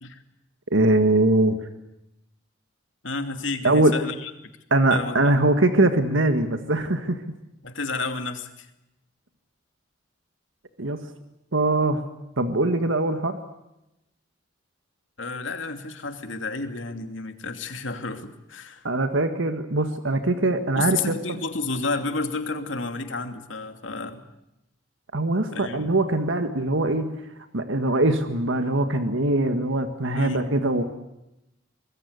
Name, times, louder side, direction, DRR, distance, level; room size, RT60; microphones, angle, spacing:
voice 1, 0.7-1.6 3.6-4.0 4.7-7.2 10.8-11.1 11.5-12.0 12.4-13.4 18.8-21.1 25.1-27.1 27.5-30.8, right 2 dB, 85° right, 8 dB, 1.8 m, -22 dB
voice 2, 3.0-4.3 4.9-5.3 7.6-8.7 15.2-18.9 20.7-24.2 25.5-25.9 30.1-30.5, left 3 dB, 85° left, 7 dB, 2.7 m, -31 dB
25.0 x 21.0 x 8.2 m, 0.89 s
head